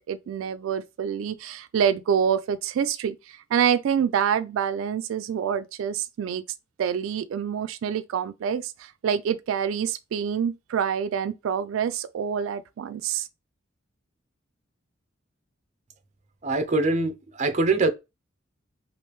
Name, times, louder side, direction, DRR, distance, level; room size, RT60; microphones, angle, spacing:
voice 1, 0.0-6.4 6.8-13.3, right 8 dB, 90° right, 0.3 m, -26 dB
voice 2, 16.4-17.9, right 3 dB, 35° right, 0.5 m, -23 dB
3.2 x 2.5 x 3.0 m
head